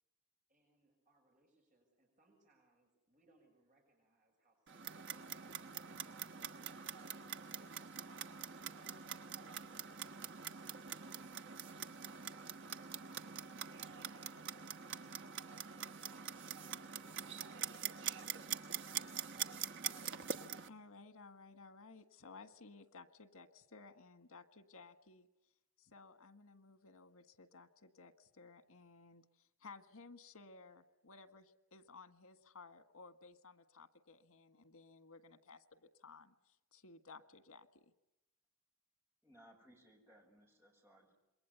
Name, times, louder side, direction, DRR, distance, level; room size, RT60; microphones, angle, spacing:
voice 1, 0.5-5.4 5.8-9.3 14.5-19.1, right 2 dB, 35° right, 1 dB, 6.5 m, -73 dB
Clock, 4.7-20.7, right 8 dB, 60° right, 1.2 m, -45 dB
voice 2, 20.7-25.3 25.8-37.9, left 4 dB, 90° left, 10 dB, 1.8 m, -58 dB
voice 3, 39.2-41.1, equal, 10° right, 1 dB, 7.1 m, -64 dB
27.5 x 22.5 x 8.2 m, 0.97 s
head